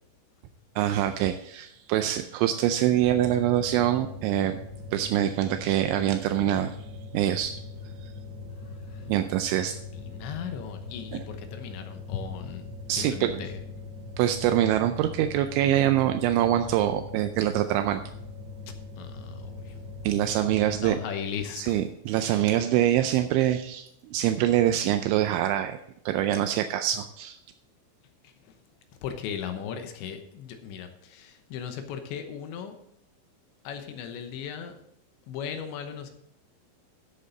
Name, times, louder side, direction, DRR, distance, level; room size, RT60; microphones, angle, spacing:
voice 1, 0.8-4.6 4.9-6.8 7.1-7.6 8.0-8.1 9.1-9.7 11.1-11.2 12.9-13.5 14.2-18.0 20.0-21.0 21.6-25.8 26.1-27.4, right 12 dB, 85° right, 8 dB, 2.9 m, -25 dB
sound 1, 3.0-20.9, left 3 dB, 35° right, 2.9 m, -41 dB
voice 2, 10.2-12.7 13.0-13.5 19.0-19.3 20.4-21.8 29.0-32.8 33.7-34.8 35.3-36.1, left 7 dB, 75° left, 7 dB, 3.1 m, -37 dB
13.5 x 7.5 x 3.9 m, 0.78 s
omnidirectional pair, 5.6 m